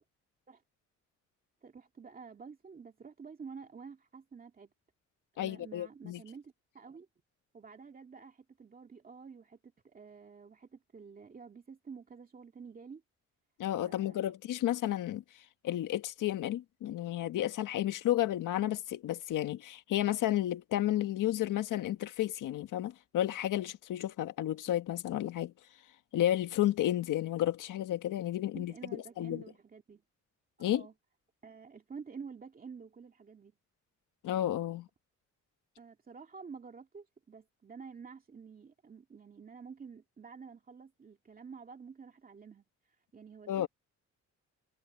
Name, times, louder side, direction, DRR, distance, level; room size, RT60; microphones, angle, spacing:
voice 1, 1.6-4.7 5.4-7.1 7.5-9.6 9.8-13.0 13.8-14.2 28.5-30.0 30.6-30.9 31.4-33.5 35.8-42.6 43.1-43.7, right 5 dB, 30° right, 2.4 m, -49 dB
voice 2, 5.4-6.2 13.6-15.2 15.6-25.5 26.1-29.4 30.6-30.8 34.2-34.9 43.5-43.7, left 13 dB, 85° left, 1.7 m, -32 dB
cardioid pair, 150°, 31 cm